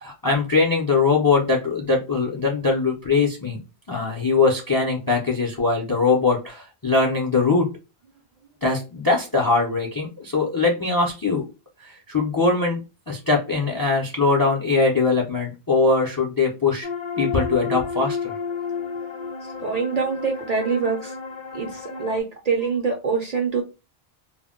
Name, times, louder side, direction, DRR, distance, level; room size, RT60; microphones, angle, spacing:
voice 1, 0.0-3.6 3.9-7.7 8.6-11.4 11.8-12.8 13.1-16.9 17.2-18.4, left 4 dB, 35° left, 1 dB, 0.4 m, -21 dB
sound 1, 16.8-22.2, left 5 dB, 55° left, 0.8 m, -31 dB
voice 2, 19.6-21.1 21.5-23.6, right 5 dB, 50° right, 1 dB, 0.5 m, -25 dB
2.1 x 2.1 x 3.5 m, 0.29 s
omnidirectional pair, 1.1 m